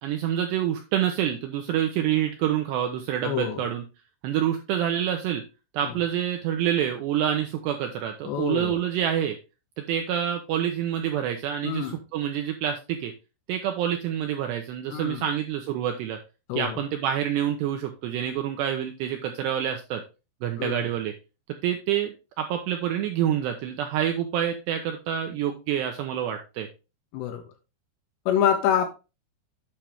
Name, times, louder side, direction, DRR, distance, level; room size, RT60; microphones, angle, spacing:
voice 1, 0.0-3.8 4.2-5.4 5.7-9.4 9.8-13.1 13.5-16.2 16.6-20.0 20.4-21.1 21.6-26.7, right 10 dB, 80° right, 4 dB, 2.5 m, -27 dB
voice 2, 3.2-3.6 5.8-5.9 8.2-8.8 11.6-12.0 14.9-15.2 16.5-16.8 20.6-20.8 27.1-27.4 28.3-28.9, left 9 dB, 75° left, 5 dB, 2.8 m, -26 dB
8.8 x 5.9 x 3.4 m, 0.29 s
omnidirectional pair, 5.7 m